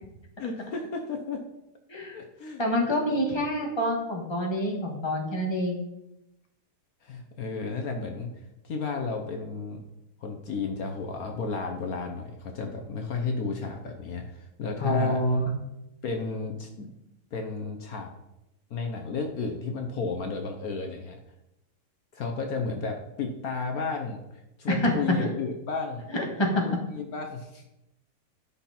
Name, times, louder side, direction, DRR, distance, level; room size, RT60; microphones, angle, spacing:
voice 1, 0.4-1.4 2.1-2.6 7.0-8.3 8.6-9.8 10.2-15.2 16.0-16.9 17.3-18.1 18.7-21.2 22.1-26.1 26.6-27.6, left 4 dB, 65° left, 4 dB, 1.4 m, -33 dB
voice 2, 2.6-5.8 14.8-15.4 24.7-24.9 25.2-25.3 26.1-26.6, left 1 dB, 15° left, 0 dB, 1.6 m, -26 dB
12.0 x 5.8 x 4.3 m, 0.88 s
omnidirectional pair, 1.7 m